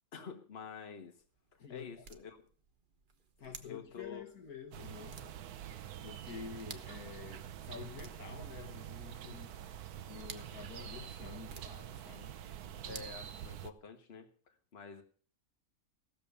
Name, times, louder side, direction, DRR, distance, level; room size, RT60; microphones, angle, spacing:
voice 1, 0.1-1.2 1.5-2.5 3.4-4.2 6.3-6.4 12.6-15.0, left 6 dB, 45° left, 1.6 m, -49 dB
sound 1, 0.9-14.0, right 4 dB, 40° right, 1.0 m, -57 dB
voice 2, 1.6-2.1 3.4-5.4 6.0-9.6 10.1-12.3 12.9-13.0, left 6 dB, 80° left, 1.9 m, -49 dB
sound 2, 4.7-13.7, right 10 dB, 90° right, 1.3 m, -46 dB
15.5 x 7.1 x 6.9 m
omnidirectional pair, 1.6 m